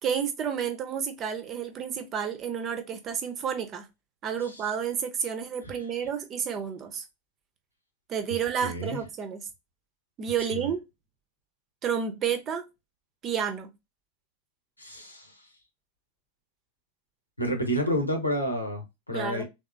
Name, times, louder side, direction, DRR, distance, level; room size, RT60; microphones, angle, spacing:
voice 1, 0.0-3.9 4.2-7.0 8.1-9.4 10.2-10.8 11.8-12.7 13.2-13.7 19.1-19.4, right 7 dB, 30° right, 0.8 m, -30 dB
voice 2, 8.3-9.0 10.5-10.7 14.8-15.4 17.4-19.4, equal, 85° left, 1.0 m, -30 dB
3.6 x 3.1 x 2.6 m
figure-of-eight pair, 90°, 0 cm